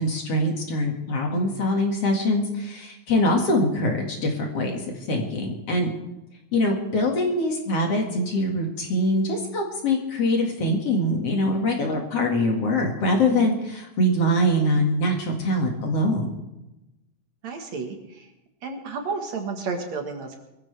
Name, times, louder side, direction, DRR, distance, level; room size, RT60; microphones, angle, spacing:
voice 1, 0.0-4.8 5.1-5.9 6.5-16.3, left 1 dB, 50° left, 1 dB, 2.8 m, -23 dB
voice 2, 17.4-18.3 18.6-20.4, right 4 dB, 60° right, 4 dB, 2.6 m, -32 dB
22.5 x 14.5 x 3.4 m, 0.95 s
omnidirectional pair, 3.8 m